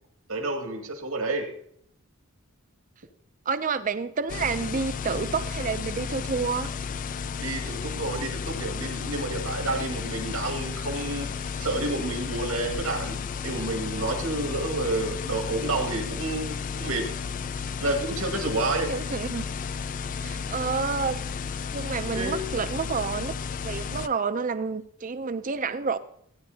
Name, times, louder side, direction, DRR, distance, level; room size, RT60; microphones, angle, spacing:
voice 1, 0.3-1.5 7.4-11.3 11.6-13.2 13.4-17.0 17.8-18.9 22.1-22.4, right 2 dB, 85° right, 3 dB, 2.1 m, -29 dB
voice 2, 3.5-6.7 18.7-19.5 20.2-21.2 21.7-23.3 23.6-26.0, right 5 dB, 35° right, 12 dB, 0.5 m, -29 dB
sound 1, 4.3-24.1, left 6 dB, 40° left, 0.3 m, -33 dB
16.0 x 9.8 x 2.8 m, 0.67 s
head